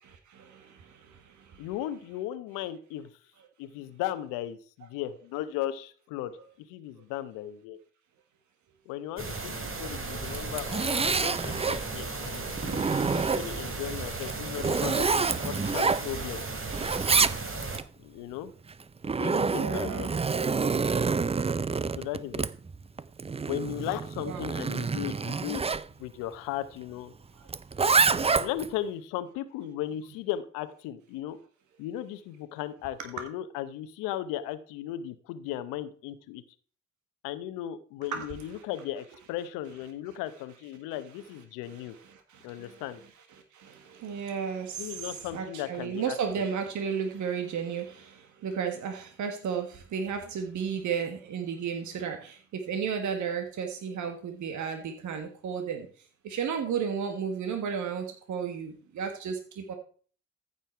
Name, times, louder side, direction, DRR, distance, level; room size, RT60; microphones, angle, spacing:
voice 1, 0.2-1.7 19.4-20.1 24.2-24.5 27.4-27.5 38.1-38.3 41.6-42.9 43.3-59.7, right 7 dB, 65° right, 5 dB, 1.6 m, -34 dB
voice 2, 1.6-3.1 3.6-6.4 6.7-7.8 8.9-16.4 18.0-18.5 19.1-20.1 22.0-22.4 23.5-25.6 26.0-27.1 28.1-31.4 31.8-36.4 37.2-42.0 42.4-43.0 44.8-46.2, left 12 dB, 85° left, 13 dB, 0.9 m, -36 dB
sound 1, 9.2-17.8, right 3 dB, 40° right, 2.8 m, -36 dB
Zipper (clothing), 10.2-11.8 12.3-13.7 14.2-16.4 16.7-17.8 18.7-25.8 27.5-28.7, right 4 dB, 20° right, 0.5 m, -27 dB
14.5 x 5.5 x 4.5 m, 0.42 s
hypercardioid pair, 50°, 31 cm